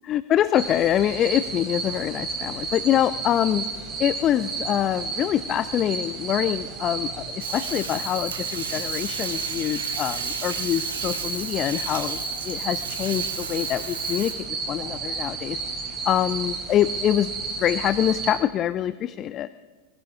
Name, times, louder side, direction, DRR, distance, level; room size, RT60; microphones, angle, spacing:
voice 1, 0.1-3.6 4.0-12.2 12.4-14.3 14.7-15.6 16.1-17.3 17.6-19.5, left 11 dB, 30° left, 15 dB, 0.4 m, -25 dB
sound 1, 0.5-18.3, right 4 dB, 25° right, 4.1 m, -32 dB
Bathtub (filling or washing), 7.4-14.3, right 6 dB, 65° right, 1.8 m, -35 dB
22.0 x 16.0 x 3.6 m, 1.3 s
figure-of-eight pair, 90°, 0 cm